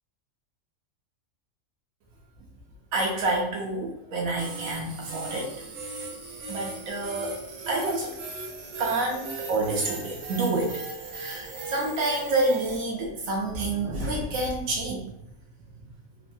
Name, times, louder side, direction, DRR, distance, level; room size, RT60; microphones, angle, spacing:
voice 1, 2.9-5.5 6.5-7.4 7.7-8.2 8.8-10.8 11.1-15.0, right 2 dB, 90° right, -1 dB, 1.0 m, -28 dB
sound 1, 4.4-12.8, right 4 dB, 60° right, 0.8 m, -38 dB
3.1 x 2.1 x 2.6 m, 0.79 s
omnidirectional pair, 1.4 m